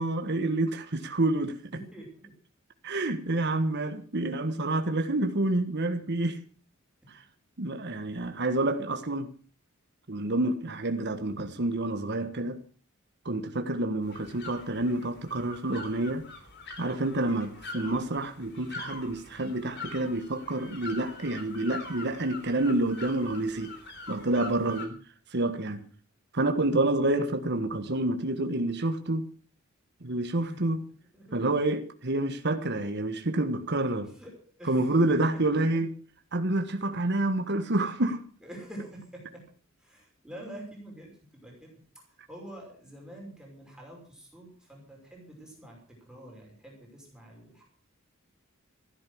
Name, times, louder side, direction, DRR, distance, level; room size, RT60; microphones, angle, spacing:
voice 1, 0.0-1.5 2.8-6.4 7.6-9.3 10.1-12.6 13.2-16.2 16.8-23.7 24.1-25.0 25.3-25.8 26.3-29.3 30.0-30.8 31.3-34.1 34.6-35.9 36.3-38.2, right 2 dB, 55° right, 1.5 m, -28 dB
voice 2, 1.7-2.3 8.3-8.4 30.4-30.6 31.1-31.7 34.1-34.3 34.6-35.8 38.4-39.4 39.8-41.8 42.1-47.6, right 1 dB, 5° right, 5.7 m, -46 dB
sound 1, 14.0-24.9, left 3 dB, 55° left, 3.7 m, -44 dB
14.5 x 12.5 x 6.3 m
head